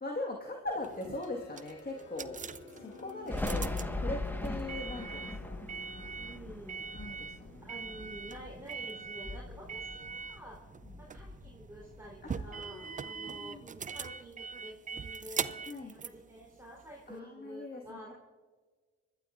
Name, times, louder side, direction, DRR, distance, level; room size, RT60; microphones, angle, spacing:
voice 1, 0.0-2.4 2.7-5.6 6.9-7.6 12.2-13.6 15.7-15.9 17.1-18.1, left 2 dB, 30° left, 0 dB, 1.7 m, -41 dB
sound 1, 0.7-17.2, right 6 dB, 25° right, 0.5 m, -43 dB
sound 2, 0.8-12.7, left 5 dB, 75° left, 1.2 m, -52 dB
Thunder, 3.3-8.7 9.1-10.6 10.8-12.5, left 2 dB, 5° left, 1.4 m, -40 dB
voice 2, 6.2-6.9 7.6-10.6 11.0-15.6 16.0-18.1, right 1 dB, 10° right, -4 dB, 3.8 m, -49 dB
24.5 x 12.0 x 2.6 m, 1.4 s
hypercardioid pair, 50°, 30 cm